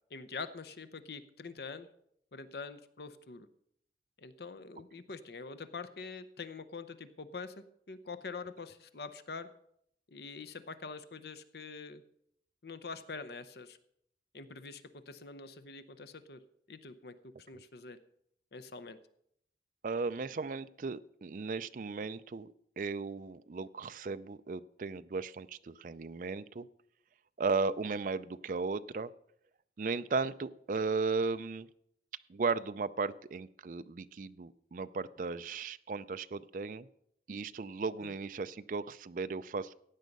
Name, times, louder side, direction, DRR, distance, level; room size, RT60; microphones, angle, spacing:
voice 1, 0.1-1.9 2.3-3.5 4.2-9.5 10.1-12.0 12.6-13.8 14.3-16.4 16.7-18.0 18.5-19.0 38.0-38.2, left 4 dB, 65° left, 11 dB, 0.7 m, -45 dB
voice 2, 19.8-22.5 22.8-26.7 27.4-29.1 29.8-31.7 32.3-36.9 37.3-39.7, right 4 dB, 45° right, 12 dB, 0.4 m, -36 dB
15.5 x 9.2 x 5.3 m, 0.72 s
head